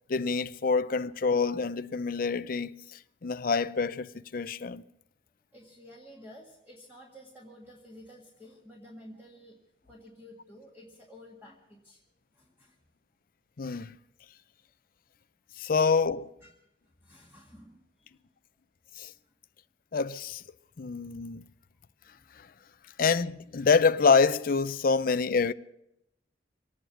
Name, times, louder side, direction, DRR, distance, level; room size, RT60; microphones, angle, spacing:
voice 1, 0.1-4.8 13.6-14.0 15.6-16.3 19.0-19.1 19.9-20.4 20.8-21.5 23.0-25.5, left 5 dB, 50° left, 0.5 m, -26 dB
voice 2, 5.5-9.6 9.9-12.0 12.3-12.8 16.4-16.6 16.8-18.2 19.0-19.3 22.1-22.3, equal, 10° right, 1.9 m, -52 dB
25.0 x 9.3 x 5.8 m
head